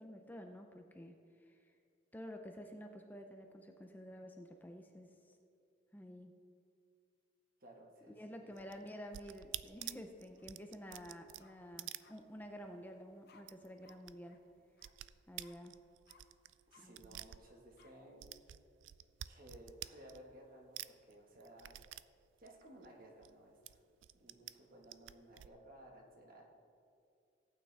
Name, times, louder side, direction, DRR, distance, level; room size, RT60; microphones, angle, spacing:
voice 1, 0.0-1.7 2.1-5.4 5.9-6.3 8.1-14.4 15.3-15.7 16.8-17.2, equal, 10° left, 4 dB, 0.5 m, -51 dB
voice 2, 7.6-8.7 16.7-18.4 19.3-21.8 22.4-23.8 24.1-26.4, right 1 dB, 50° right, 0 dB, 1.5 m, -58 dB
sound 1, 8.5-12.7 13.0-13.1 13.4-14.1 14.4-17.9 18.2-20.5 20.8-23.3 23.7-24.5 24.8-25.5, right 14 dB, 75° right, 0.3 m, -49 dB
sound 2, 10.4-10.5 10.8-11.6 12.0-12.1 13.3-13.4 13.8-14.0 14.2-14.4 14.8-14.9 15.4-15.6 16.1-16.2 16.7-16.9 17.8-17.9, left 5 dB, 55° left, 0.7 m, -65 dB
16.0 x 8.8 x 3.4 m, 2.4 s
head